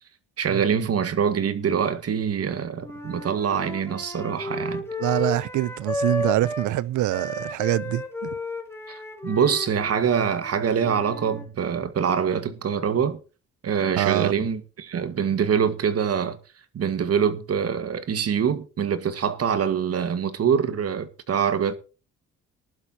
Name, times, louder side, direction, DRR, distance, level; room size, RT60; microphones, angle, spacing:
voice 1, 0.4-4.9 8.9-13.2 13.6-16.4 16.7-21.7, right 7 dB, 55° right, 1.7 m, -24 dB
Wind instrument woodwind instrument, 2.8-6.7 7.1-11.5, left 2 dB, 10° left, 3.3 m, -33 dB
voice 2, 5.0-8.3 14.0-14.4, right 14 dB, 75° right, 0.7 m, -25 dB
19.5 x 11.5 x 2.9 m
cardioid pair, 90°, 30 cm